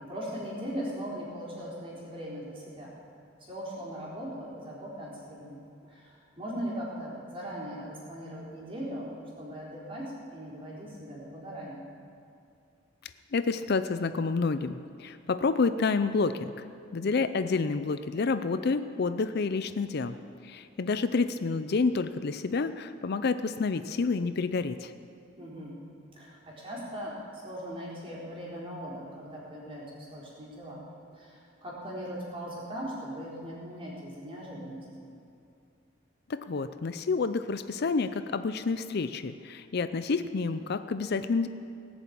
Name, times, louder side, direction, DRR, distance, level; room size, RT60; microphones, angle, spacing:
voice 1, 0.0-2.9 3.5-5.6 5.8-9.1 9.4-11.9 25.4-25.8 26.1-30.8 31.1-35.1, equal, 30° right, -5 dB, 4.0 m, -39 dB
voice 2, 13.3-16.6 16.9-20.2 20.4-24.9 36.3-41.5, left 4 dB, 55° left, 11 dB, 0.5 m, -29 dB
18.5 x 7.1 x 8.6 m, 2.5 s
head